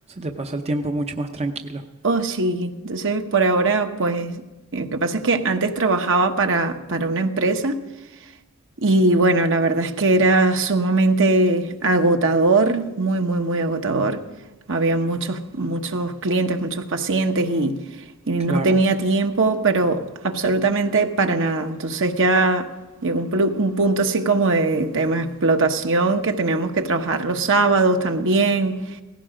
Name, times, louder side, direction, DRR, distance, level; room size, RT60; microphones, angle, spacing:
voice 1, 0.1-1.8 18.5-18.8, right 2 dB, 30° right, 0.7 m, -27 dB
voice 2, 2.0-4.4 4.7-7.8 8.8-14.2 14.7-17.8 18.3-22.7 23.0-28.8, right 3 dB, 60° right, 1.2 m, -20 dB
18.0 x 15.5 x 5.0 m
head